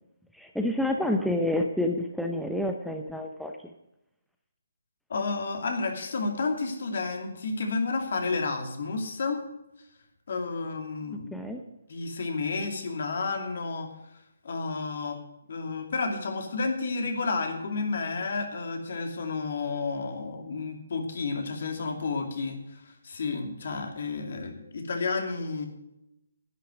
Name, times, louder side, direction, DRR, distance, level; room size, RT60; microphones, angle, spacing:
voice 1, 0.3-3.5 11.3-11.6, left 1 dB, ahead, 3 dB, 0.7 m, -28 dB
voice 2, 5.1-9.4 10.3-11.5 11.9-13.9 14.4-15.2 15.5-25.6, left 4 dB, 60° left, 4 dB, 2.6 m, -31 dB
11.0 x 9.5 x 6.2 m, 0.86 s
figure-of-eight pair, 150°, 0 cm